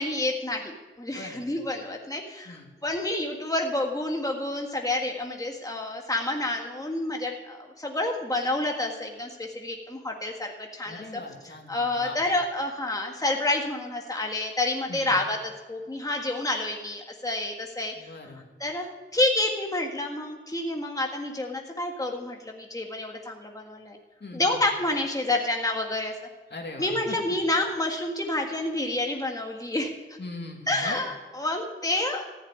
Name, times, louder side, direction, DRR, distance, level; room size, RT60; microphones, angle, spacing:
voice 1, 0.0-11.0 11.4-15.4 15.7-18.1 18.6-24.0 24.3-26.1 26.8-29.9 30.7-32.2, left 2 dB, 15° left, 1 dB, 1.8 m, -29 dB
voice 2, 1.1-1.5 2.4-2.7 10.9-12.2 14.9-15.2 17.9-18.4 24.2-24.6 26.5-27.2 30.2-31.0, left 2 dB, 55° left, 0 dB, 2.7 m, -40 dB
14.5 x 7.3 x 9.5 m, 1.2 s
wide cardioid pair, 75°, 21 cm